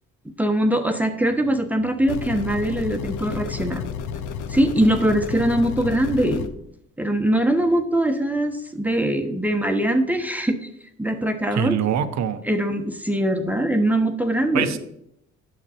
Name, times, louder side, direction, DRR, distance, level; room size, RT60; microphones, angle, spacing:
voice 1, 0.2-3.8 4.5-6.5 7.0-10.6 11.0-11.8 12.4-14.8, right 1 dB, 5° right, 5 dB, 0.9 m, -22 dB
sound 1, 2.1-6.5, left 7 dB, 85° left, 0.7 m, -31 dB
voice 2, 11.5-12.4 14.5-14.8, right 9 dB, 65° right, 11 dB, 0.8 m, -24 dB
9.0 x 6.7 x 4.3 m, 0.76 s
cardioid pair, 90°, 30 cm